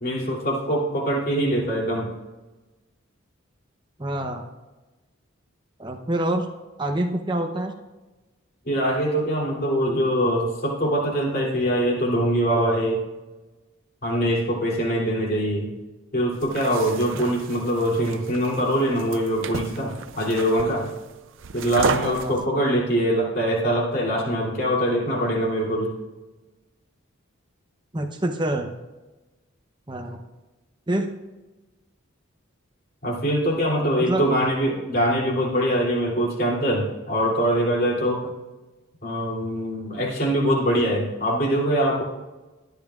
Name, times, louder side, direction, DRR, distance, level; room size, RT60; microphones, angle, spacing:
voice 1, 0.0-2.1 8.6-13.0 14.0-15.7 16.1-20.9 21.5-25.9 33.0-38.2 39.0-42.0, equal, 45° left, -2 dB, 2.8 m, -23 dB
voice 2, 4.0-4.5 5.8-6.5 6.8-7.7 17.1-17.4 22.0-22.4 27.9-28.7 29.9-30.2 30.9-31.1 34.0-34.2, right 1 dB, 20° right, 5 dB, 0.7 m, -26 dB
sound 1, 16.3-22.5, right 5 dB, 65° right, 0.5 m, -33 dB
20.0 x 11.0 x 2.4 m, 1.1 s
head